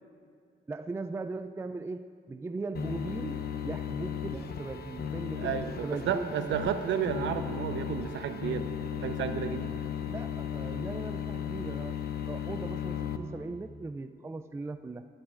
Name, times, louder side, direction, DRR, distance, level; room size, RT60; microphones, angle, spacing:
voice 1, 0.7-6.6 10.0-12.0 12.3-15.1, right 3 dB, 15° right, 9 dB, 0.3 m, -39 dB
sound 1, 2.7-13.2, left 8 dB, 55° left, 0.8 m, -36 dB
voice 2, 5.4-8.7 9.0-9.7, right 8 dB, 70° right, 9 dB, 0.8 m, -32 dB
22.0 x 11.5 x 2.5 m, 2.2 s
cardioid pair, 90°, 20 cm